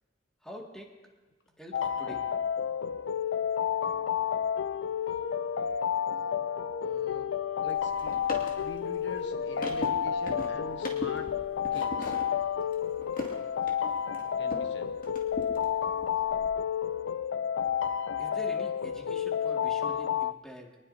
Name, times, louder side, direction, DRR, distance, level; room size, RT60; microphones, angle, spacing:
voice 1, 0.4-0.9 1.6-2.3 18.2-20.8, equal, 5° left, -1 dB, 2.1 m, -45 dB
sound 1, 1.7-20.3, left 8 dB, 85° left, 0.4 m, -30 dB
voice 2, 6.8-7.3 7.6-8.2 8.6-11.3 11.7-12.2 14.4-14.9, left 2 dB, 70° left, 4 dB, 1.3 m, -44 dB
sound 2, 7.7-14.7 15.0-16.5, left 1 dB, 50° left, 2.3 m, -41 dB
24.5 x 19.5 x 2.8 m, 1.2 s
head